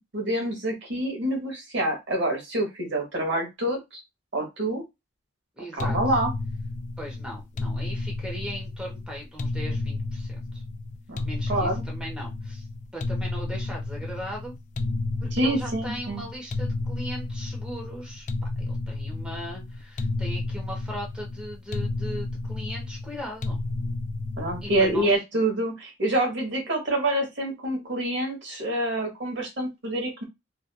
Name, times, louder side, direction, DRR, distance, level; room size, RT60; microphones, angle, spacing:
voice 1, 0.1-4.0 4.3-4.8 5.7-6.3 11.1-11.2 11.5-11.8 15.3-16.2 24.4-30.2, right 1 dB, 65° right, 1 dB, 1.1 m, -27 dB
voice 2, 5.6-6.0 7.0-10.6 11.2-12.7 12.9-14.5 15.2-18.3 18.7-23.6 24.6-25.1, equal, 5° right, -1 dB, 0.8 m, -38 dB
sound 1, 5.8-25.1, left 2 dB, 40° left, 0.3 m, -32 dB
2.8 x 2.4 x 2.2 m, 0.21 s
head